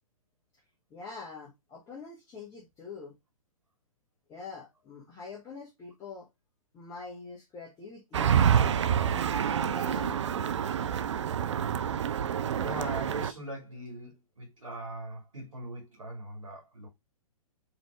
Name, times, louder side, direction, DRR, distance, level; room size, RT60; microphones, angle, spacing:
voice 1, 0.9-3.1 4.3-6.3 6.7-10.3, left 4 dB, 15° left, 1.1 m, -44 dB
sound 1, 8.1-13.3, right 8 dB, 55° right, 0.5 m, -27 dB
voice 2, 12.5-16.9, right 1 dB, 75° right, 1.8 m, -41 dB
5.2 x 2.6 x 3.4 m
figure-of-eight pair, 115°, 18 cm